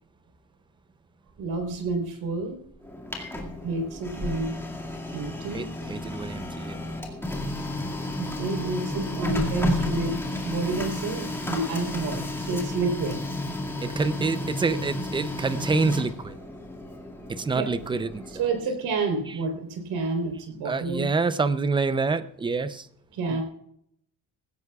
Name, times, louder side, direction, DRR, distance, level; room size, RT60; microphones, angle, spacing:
voice 1, 1.4-2.6 3.6-4.6 5.1-5.7 8.2-13.2 17.5-17.7 18.4-21.1 23.1-23.4, right 3 dB, 85° right, 4 dB, 3.8 m, -29 dB
Printer, 2.8-18.6, left 1 dB, 5° left, 2.1 m, -32 dB
voice 2, 5.5-6.8 13.8-16.3 17.3-18.2 18.6-18.7 20.6-22.9 23.3-23.4, right 4 dB, 15° right, 13 dB, 0.5 m, -27 dB
19.0 x 16.5 x 2.4 m, 0.72 s
cardioid pair, 165°, 36 cm